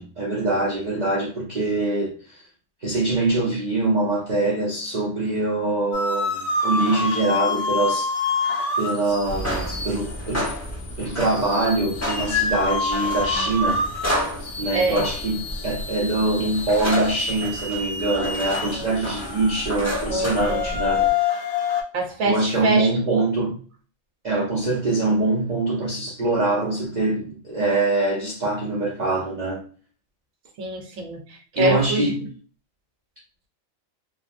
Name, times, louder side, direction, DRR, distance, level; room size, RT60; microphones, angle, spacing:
voice 1, 0.0-2.4 2.8-8.4 8.8-10.5 11.0-13.9 14.6-21.1 22.2-23.6 24.2-29.6 31.6-32.3, right 2 dB, 50° right, 0.5 m, -24 dB
sound 1, 5.9-21.8, left 4 dB, 80° left, 0.3 m, -28 dB
sound 2, 9.2-21.1, equal, 15° left, 0.7 m, -31 dB
voice 2, 14.7-15.1 20.1-20.7 21.0-21.1 21.9-22.9 30.6-32.1, right 1 dB, 80° right, 1.1 m, -25 dB
3.1 x 2.0 x 2.4 m
omnidirectional pair, 1.4 m